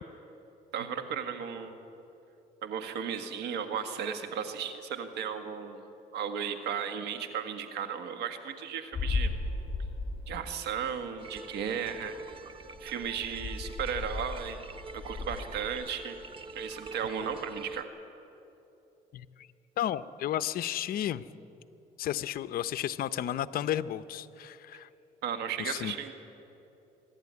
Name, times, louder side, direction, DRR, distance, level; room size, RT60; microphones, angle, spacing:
voice 1, 0.7-1.7 2.6-5.8 6.1-9.3 10.3-12.2 12.8-14.6 14.9-16.2 16.5-17.9 25.2-26.1, right 7 dB, 90° right, 7 dB, 1.7 m, -35 dB
sound 1, 8.9-10.9 11.2-11.3 11.9-12.0 12.2-12.4 12.7-15.7, left 3 dB, 30° left, 6.3 m, -35 dB
sound 2, 11.2-17.8, right 2 dB, 30° right, 0.9 m, -46 dB
voice 2, 19.1-19.5 19.8-21.2 22.0-24.9 25.6-25.9, left 11 dB, 60° left, 14 dB, 0.7 m, -33 dB
24.5 x 11.5 x 9.6 m, 3.0 s
cardioid pair, 110°, 17 cm